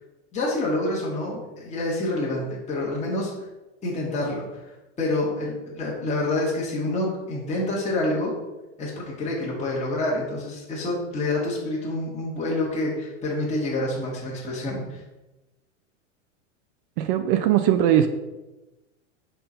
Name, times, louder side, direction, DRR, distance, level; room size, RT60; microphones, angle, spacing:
voice 1, 0.3-3.3 3.8-8.3 8.8-15.0, left 2 dB, 20° left, -4 dB, 1.5 m, -27 dB
voice 2, 17.0-18.1, right 11 dB, 45° right, 8 dB, 0.5 m, -20 dB
4.6 x 3.7 x 5.5 m, 1.1 s
hypercardioid pair, 125°, 37 cm